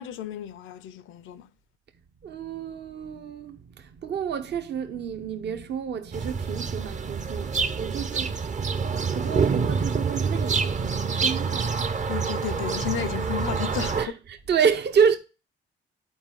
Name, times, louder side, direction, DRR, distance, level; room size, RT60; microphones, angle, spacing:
voice 1, 0.0-1.5 12.1-14.0, left 10 dB, 85° left, 0.7 m, -33 dB
voice 2, 2.2-12.4 13.9-15.2, right 7 dB, 60° right, 1.0 m, -29 dB
sound 1, 6.1-14.1, right 5 dB, 40° right, 0.7 m, -27 dB
11.0 x 4.4 x 3.7 m
cardioid pair, 90°, 20 cm